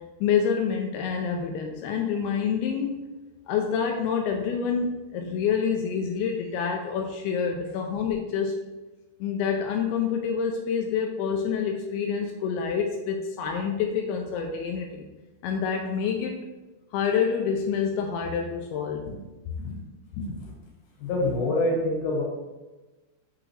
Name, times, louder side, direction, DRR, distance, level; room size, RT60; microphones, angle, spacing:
voice 1, 0.2-3.0 3.5-8.6 9.2-15.1 15.4-16.4 16.9-19.1, left 6 dB, 85° left, 2 dB, 2.2 m, -27 dB
voice 2, 20.2-20.5 21.0-22.2, left 1 dB, 55° left, -2 dB, 2.5 m, -26 dB
6.1 x 6.0 x 3.2 m, 1.1 s
omnidirectional pair, 5.1 m